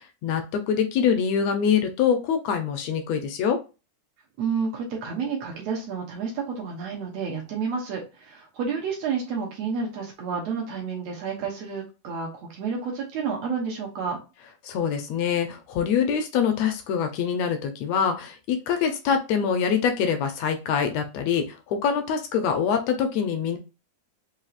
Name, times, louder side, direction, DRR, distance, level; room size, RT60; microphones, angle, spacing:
voice 1, 0.0-3.6 14.6-23.6, left 7 dB, 75° left, 6 dB, 1.6 m, -24 dB
voice 2, 4.4-14.2, right 5 dB, 70° right, 0 dB, 1.8 m, -30 dB
5.7 x 2.7 x 2.4 m, 0.29 s
omnidirectional pair, 3.5 m